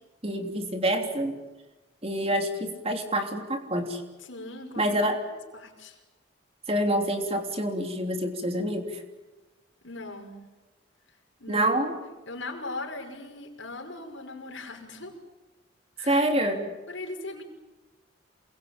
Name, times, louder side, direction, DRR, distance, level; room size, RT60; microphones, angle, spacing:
voice 1, 0.2-1.4 2.0-4.0 4.8-5.2 6.7-9.0 11.5-11.9 16.0-16.7, right 1 dB, 30° right, 4 dB, 3.3 m, -27 dB
voice 2, 4.3-4.9 5.5-6.0 9.8-10.4 11.4-11.8 12.3-15.1 16.0-16.2 16.9-17.4, left 2 dB, 70° left, 2 dB, 5.9 m, -39 dB
28.0 x 22.5 x 8.9 m, 1.2 s
head